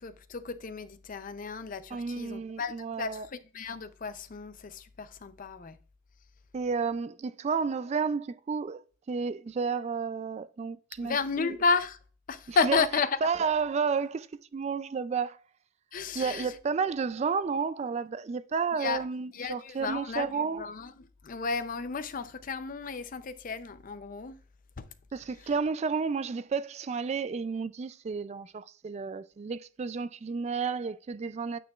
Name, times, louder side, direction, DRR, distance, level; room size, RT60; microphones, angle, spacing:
voice 1, 0.0-3.2 3.5-5.8 11.0-12.0 12.3-13.1 15.9-16.5 18.8-19.0 19.3-20.3 20.6-20.9 21.2-24.4 24.8-24.9, left 4 dB, 45° left, 0.5 m, -32 dB
voice 2, 1.9-3.3 6.5-11.6 12.5-12.8 13.2-15.4 16.1-20.6 25.1-31.6, right 5 dB, 35° right, 0.3 m, -31 dB
9.0 x 6.0 x 2.4 m
head